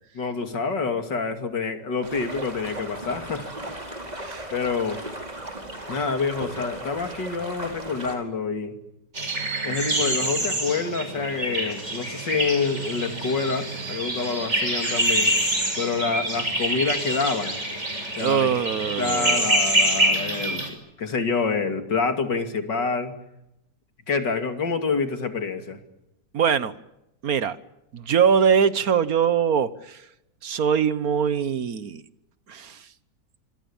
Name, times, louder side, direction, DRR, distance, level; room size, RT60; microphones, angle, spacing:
voice 1, 0.1-3.5 4.5-5.0 5.9-8.8 9.6-15.3 15.8-17.6 18.2-18.7 19.0-20.6 21.0-23.1 24.1-25.8, left 4 dB, 90° left, 7 dB, 3.2 m, -27 dB
sound 1, 2.0-8.1, right 1 dB, 20° right, 4.8 m, -37 dB
sound 2, 9.2-20.7, right 1 dB, 40° right, 6.0 m, -26 dB
voice 2, 18.2-19.5 26.3-26.7 27.2-27.6 27.9-30.0 30.4-32.0 32.5-32.8, right 7 dB, 60° right, 15 dB, 1.5 m, -22 dB
26.0 x 26.0 x 7.2 m, 0.86 s
omnidirectional pair, 1.9 m